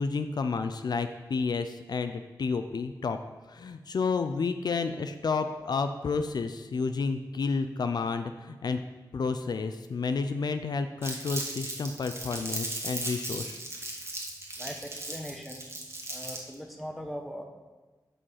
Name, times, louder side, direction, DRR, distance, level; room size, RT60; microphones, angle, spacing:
voice 1, 0.0-3.2 3.5-8.8 9.1-13.6, left 4 dB, 65° left, 8 dB, 0.4 m, -30 dB
Crumpling crinkling, 11.0-16.5, right 1 dB, 35° right, 1.4 m, -37 dB
voice 2, 14.6-15.6 16.1-17.4, equal, ahead, 2 dB, 1.0 m, -40 dB
6.5 x 5.1 x 5.6 m, 1.3 s
wide cardioid pair, 85°, 8 cm